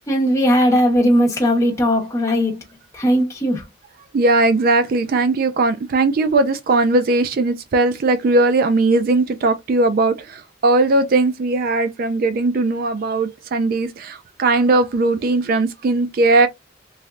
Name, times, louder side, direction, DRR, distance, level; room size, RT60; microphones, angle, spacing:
voice 1, 0.1-2.6 2.9-3.6, equal, 15° left, 1.0 m, -18 dB
voice 2, 4.1-16.5, right 2 dB, 50° right, 0.3 m, -18 dB
3.2 x 2.6 x 2.4 m
head